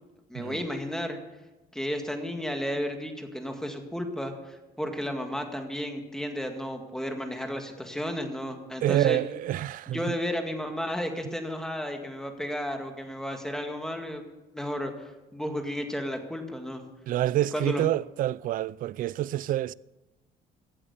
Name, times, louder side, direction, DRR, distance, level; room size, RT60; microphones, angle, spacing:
voice 1, 0.3-1.2 1.7-9.2 9.9-14.2 14.5-16.8 17.5-17.8, equal, 5° left, 1.9 m, -33 dB
voice 2, 8.8-10.1 17.1-19.7, right 13 dB, 55° right, 0.4 m, -27 dB
15.5 x 8.7 x 7.0 m
cardioid pair, 110°, 17 cm